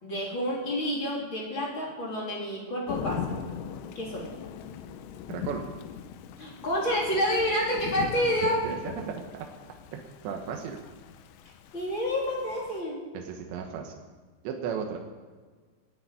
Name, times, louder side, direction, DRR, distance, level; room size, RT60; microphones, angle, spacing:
voice 1, 0.0-3.4 3.9-4.3 6.4-8.6 11.7-13.0, equal, 30° left, -3 dB, 3.4 m, -29 dB
Thunder / Rain, 2.9-12.8, left 8 dB, 75° left, 2.8 m, -40 dB
voice 2, 5.3-5.6 8.2-9.5 9.9-10.8 13.1-14.0 14.4-15.0, right 7 dB, 75° right, 2 dB, 3.3 m, -35 dB
16.5 x 8.8 x 9.8 m, 1.5 s
omnidirectional pair, 5.4 m